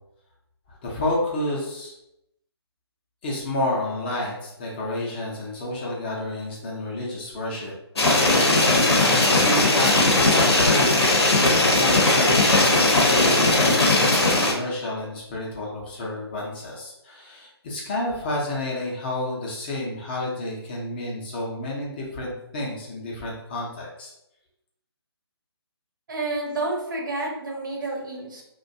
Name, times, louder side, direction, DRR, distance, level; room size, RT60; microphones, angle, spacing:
voice 1, 0.8-1.9 3.2-7.7 8.9-24.1, left 1 dB, 20° left, -4 dB, 0.5 m, -30 dB
sound 1, 8.0-14.5, left 2 dB, 75° left, 0.7 m, -18 dB
voice 2, 26.1-28.4, right 2 dB, 50° right, -1 dB, 0.6 m, -29 dB
2.5 x 2.1 x 2.5 m, 0.83 s
figure-of-eight pair, 145°, 14 cm